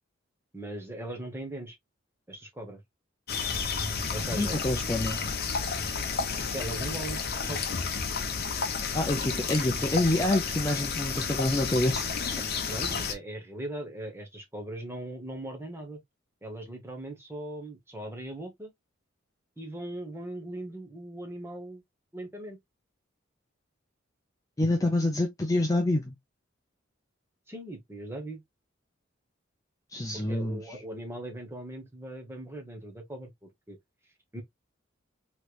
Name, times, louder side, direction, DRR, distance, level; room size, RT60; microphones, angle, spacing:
voice 1, 0.5-1.8 2.3-2.8 4.1-4.6 6.5-7.6 12.4-16.0 16.4-18.7 19.6-21.8 22.1-22.6 27.5-28.4 30.1-33.8 34.3-34.4, right 1 dB, 15° right, 1.0 m, -39 dB
sound 1, 3.3-13.1, left 5 dB, 50° left, 0.7 m, -31 dB
voice 2, 4.4-5.2 8.9-12.0 24.6-26.2 29.9-30.6, left 1 dB, 15° left, 0.5 m, -27 dB
3.2 x 3.1 x 2.4 m
head